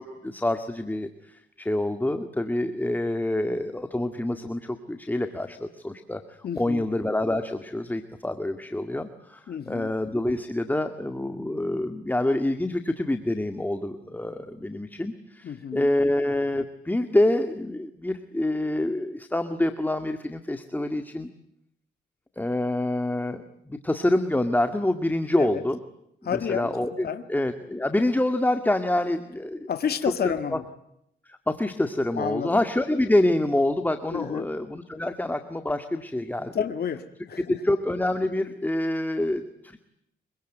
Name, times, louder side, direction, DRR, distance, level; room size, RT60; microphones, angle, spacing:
voice 1, 0.0-21.3 22.4-25.8 26.2-29.7 30.2-30.6 31.3-36.6 37.4-39.8, left 1 dB, 10° left, 8 dB, 2.0 m, -27 dB
voice 2, 6.4-6.8 9.5-9.9 15.4-15.9 25.4-25.6 26.2-26.7 27.0-27.2 29.7-30.7 32.1-32.6 34.1-34.5 36.5-37.6, left 8 dB, 55° left, 8 dB, 2.1 m, -30 dB
25.5 x 24.0 x 9.3 m, 0.78 s
cardioid pair, 90°, 20 cm